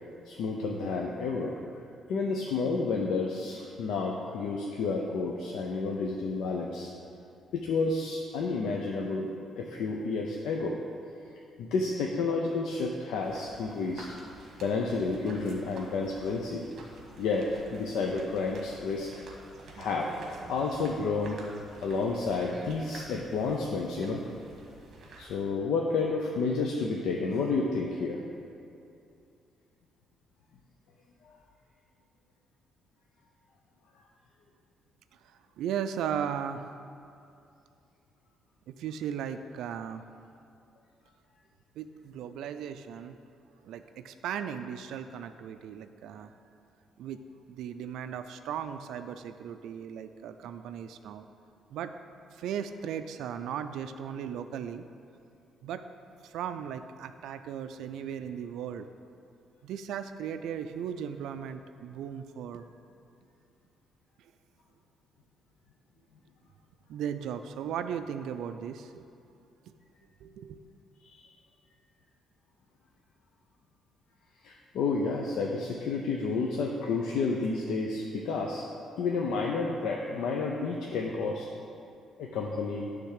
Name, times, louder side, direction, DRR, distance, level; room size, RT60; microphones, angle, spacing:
voice 1, 0.3-1.6 2.1-6.9 7.5-9.3 9.6-10.8 11.6-14.1 14.6-16.7 17.2-19.2 19.8-20.1 20.5-21.4 21.8-24.2 25.2-28.2 31.2-31.4 71.0-71.2 74.4-78.7 79.0-81.5 82.2-82.9, left 4 dB, 75° left, 0 dB, 0.6 m, -30 dB
sound 1, 13.2-25.4, right 2 dB, 45° right, 1.3 m, -49 dB
voice 2, 35.2-36.7 38.7-40.0 41.8-43.2 43.6-46.3 47.0-47.2 47.5-51.3 51.7-51.9 52.3-54.9 55.6-55.8 56.2-58.9 59.6-62.7 64.2-64.3 66.9-69.1 70.2-70.6, right 8 dB, 80° right, 9 dB, 0.3 m, -37 dB
10.0 x 3.4 x 6.5 m, 2.6 s
cardioid pair, 165°, 0 cm